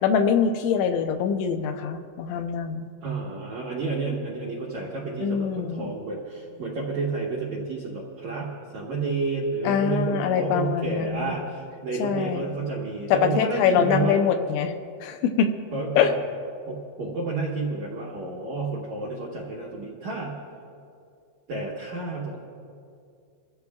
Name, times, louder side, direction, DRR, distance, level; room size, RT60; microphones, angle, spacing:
voice 1, 0.0-2.9 5.2-6.0 9.6-11.3 12.0-12.5 13.1-14.7 15.0-15.5 16.0-16.1, left 7 dB, 85° left, 7 dB, 3.1 m, -24 dB
voice 2, 3.0-14.2 15.7-16.1 16.7-20.4 21.5-22.4, right 3 dB, 75° right, -4 dB, 1.6 m, -30 dB
26.0 x 14.5 x 2.3 m, 2.4 s
omnidirectional pair, 5.3 m